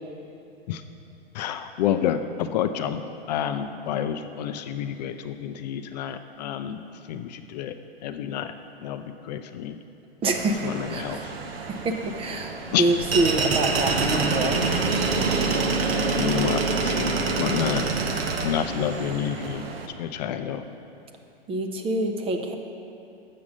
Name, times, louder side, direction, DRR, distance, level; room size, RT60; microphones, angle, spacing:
voice 1, 1.3-3.0 3.3-6.8 7.1-7.7 8.0-8.5 8.8-9.8 10.6-11.3 12.7-12.8 16.2-19.7 20.0-20.6, left 9 dB, 45° left, 8 dB, 0.4 m, -29 dB
voice 2, 10.2-11.3 11.7-14.6 21.5-22.6, right 2 dB, 20° right, 5 dB, 0.6 m, -26 dB
sound 1, 10.2-19.9, right 4 dB, 75° right, 0.9 m, -26 dB
7.4 x 5.9 x 6.3 m, 2.8 s
hypercardioid pair, 110°, 31 cm